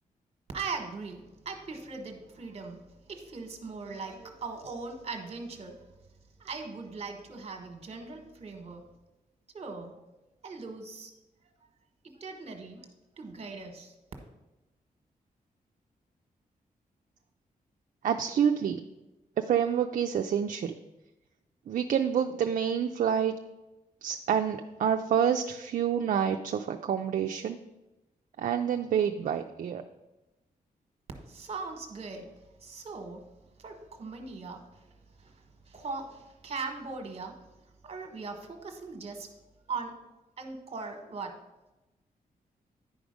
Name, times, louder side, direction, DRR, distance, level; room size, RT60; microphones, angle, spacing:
voice 1, 0.5-2.8 3.1-5.8 6.4-8.8 9.5-9.9 10.4-11.1 12.2-12.9 13.2-13.9 31.3-32.3 32.6-33.2 33.6-34.9 35.2-35.3 35.7-37.3 37.8-39.3 39.7-39.9 40.4-41.3, right 4 dB, 45° right, 4 dB, 1.2 m, -39 dB
voice 2, 18.0-18.8 19.4-20.7 21.7-23.3 24.0-27.6 28.4-29.8, right 8 dB, 60° right, 5 dB, 0.4 m, -28 dB
10.0 x 4.9 x 5.1 m, 1.0 s
wide cardioid pair, 160°, 15 cm